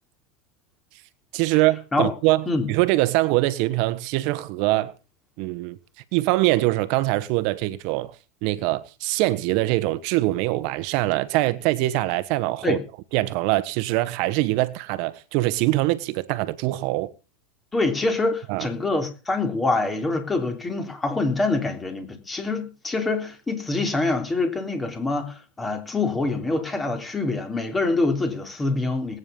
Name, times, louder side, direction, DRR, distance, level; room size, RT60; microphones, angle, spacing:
voice 1, 1.3-4.9 5.4-5.8 6.1-8.1 8.4-12.8 13.1-17.1 18.5-18.7, right 18 dB, 55° right, 1.3 m, -23 dB
voice 2, 17.7-29.2, left 3 dB, 15° left, 3.6 m, -25 dB
20.0 x 9.5 x 5.5 m
supercardioid pair, 130°, 0 cm